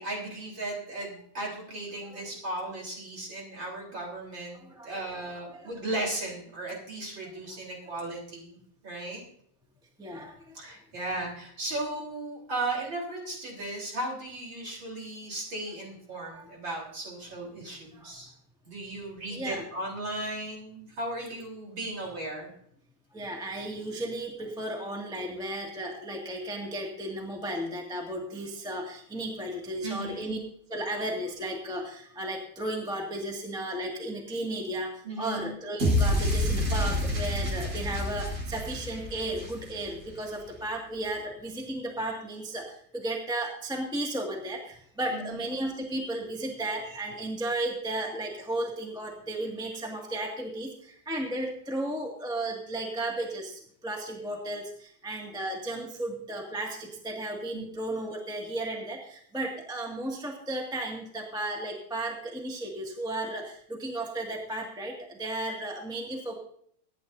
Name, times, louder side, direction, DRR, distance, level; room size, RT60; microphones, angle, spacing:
voice 1, 0.0-8.6 8.8-9.2 10.5-18.3 18.6-22.5 29.8-30.4 35.0-35.5 45.1-45.4 57.5-57.6, right 2 dB, 40° right, -2 dB, 4.3 m, -36 dB
voice 2, 4.6-5.0 5.5-5.7 10.0-10.6 16.1-16.5 17.9-18.1 19.3-19.6 21.9-22.1 23.1-30.4 30.7-66.4, right 1 dB, ahead, 0 dB, 1.2 m, -34 dB
sound 1, 35.8-40.0, left 1 dB, 85° right, 6.4 m, -28 dB
24.0 x 10.5 x 2.7 m, 0.66 s
omnidirectional pair, 3.4 m